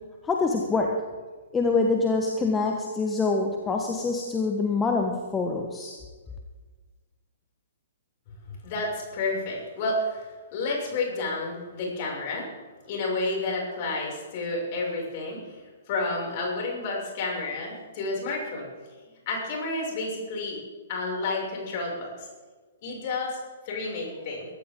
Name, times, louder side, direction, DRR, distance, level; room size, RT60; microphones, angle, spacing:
voice 1, 0.2-1.0 1.5-6.0, left 3 dB, 10° left, 1 dB, 1.4 m, -25 dB
voice 2, 8.5-10.3 10.5-12.5 12.9-15.6 15.9-18.7 19.2-20.6 20.9-22.3 22.8-23.4 23.6-24.5, left 2 dB, 40° left, -2 dB, 6.6 m, -30 dB
23.0 x 14.0 x 3.9 m, 1.4 s
figure-of-eight pair, 115°, 0 cm